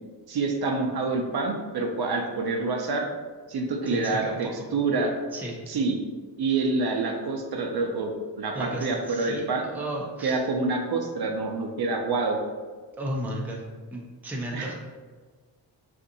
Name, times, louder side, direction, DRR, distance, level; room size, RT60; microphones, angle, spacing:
voice 1, 0.3-3.1 3.5-5.1 5.7-6.0 6.4-8.1 8.4-9.6 10.2-12.4 14.5-14.7, right 3 dB, 55° right, 2 dB, 0.6 m, -27 dB
voice 2, 3.9-4.5 5.3-5.6 8.5-10.4 13.0-13.7 13.9-14.7, right 1 dB, 5° right, -2 dB, 0.4 m, -34 dB
3.9 x 2.5 x 2.6 m, 1.5 s
cardioid pair, 100°, 45 cm